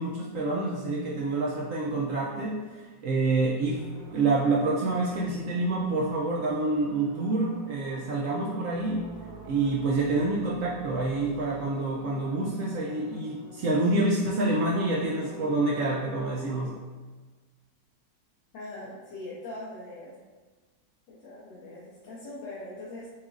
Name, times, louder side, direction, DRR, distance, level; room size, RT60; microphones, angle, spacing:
voice 1, 0.0-3.8 4.1-9.1 9.5-16.7, right 2 dB, 80° right, -4 dB, 0.7 m, -27 dB
sound 1, 3.6-16.8, right 1 dB, 45° right, 0.8 m, -47 dB
voice 2, 18.5-20.1 21.1-23.1, left 2 dB, 85° left, -8 dB, 1.5 m, -41 dB
6.9 x 2.4 x 2.4 m, 1.3 s
omnidirectional pair, 2.0 m